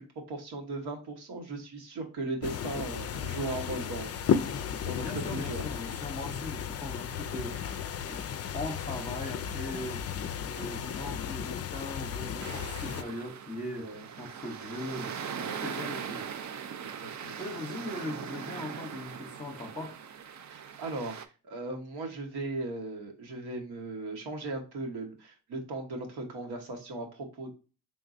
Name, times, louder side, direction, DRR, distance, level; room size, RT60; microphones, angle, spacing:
voice 1, 0.0-4.5 4.8-5.6 13.8-14.0 15.3-15.7 16.0-16.3 16.9-17.4 20.5-21.2 21.4-27.5, right 2 dB, 80° right, 1.2 m, -38 dB
sound 1, 2.4-13.0, left 8 dB, 40° left, 0.4 m, -34 dB
voice 2, 4.8-8.3 8.5-10.0 10.4-15.2 15.6-16.3 17.2-20.0, left 1 dB, 15° left, 0.7 m, -40 dB
sound 2, 12.4-21.3, right 7 dB, 45° right, 0.5 m, -40 dB
3.8 x 3.5 x 2.5 m
cardioid pair, 65°, 39 cm